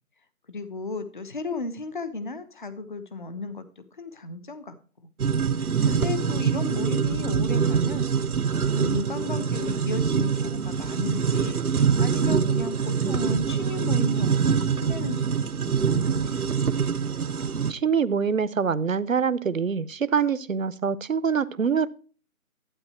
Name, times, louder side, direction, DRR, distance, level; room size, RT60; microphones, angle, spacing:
voice 1, 0.5-4.8 5.6-8.1 8.4-16.4, left 3 dB, 35° left, 11 dB, 1.1 m, -34 dB
sound 1, 5.2-17.7, right 6 dB, 90° right, 1.0 m, -24 dB
voice 2, 17.7-21.9, right 6 dB, 65° right, 16 dB, 0.9 m, -25 dB
12.5 x 8.5 x 4.4 m, 0.39 s
figure-of-eight pair, 170°, 43 cm